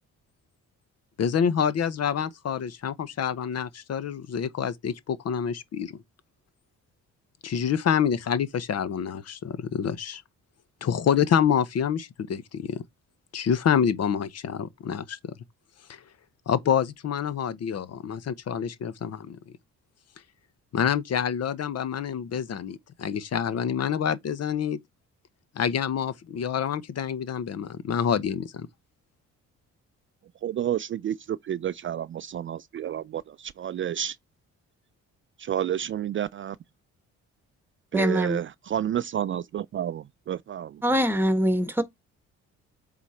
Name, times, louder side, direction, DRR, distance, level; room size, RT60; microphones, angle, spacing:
voice 1, 1.2-5.9 7.4-10.2 10.8-12.8 13.3-15.3 15.9-16.0 16.5-19.4 20.7-24.8 25.5-28.7, left 8 dB, 55° left, 1.0 m, -27 dB
voice 2, 30.4-34.1 35.4-36.6 37.9-40.7, right 10 dB, 40° right, 0.4 m, -30 dB
voice 3, 37.9-38.4 40.8-41.8, equal, 5° right, 1.4 m, -23 dB
8.1 x 4.0 x 4.3 m
cardioid pair, 90°, 30 cm